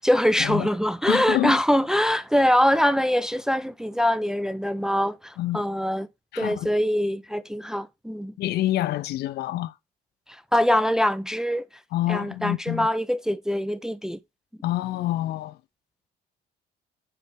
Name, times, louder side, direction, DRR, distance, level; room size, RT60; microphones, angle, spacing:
voice 1, 0.0-6.1 6.4-8.3 10.3-11.7 12.1-14.2, equal, 5° right, 0.4 m, -23 dB
voice 2, 1.1-1.6 5.4-5.6 6.3-6.7 8.4-9.7 11.9-12.9 14.6-15.6, left 15 dB, 75° left, 0.6 m, -27 dB
9.3 x 3.2 x 3.6 m
cardioid pair, 110°, 17 cm